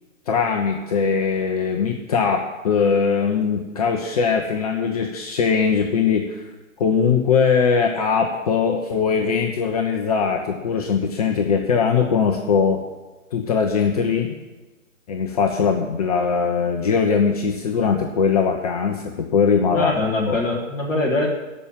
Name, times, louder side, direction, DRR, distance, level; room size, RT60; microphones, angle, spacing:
voice 1, 0.3-6.5 6.8-12.8 13.3-14.4 15.1-19.9 20.3-20.4, left 6 dB, 30° left, 2 dB, 0.9 m, -21 dB
voice 2, 19.7-21.3, left 2 dB, 10° left, -4 dB, 1.5 m, -22 dB
13.5 x 6.1 x 8.7 m, 1.1 s
figure-of-eight pair, 140°, 39 cm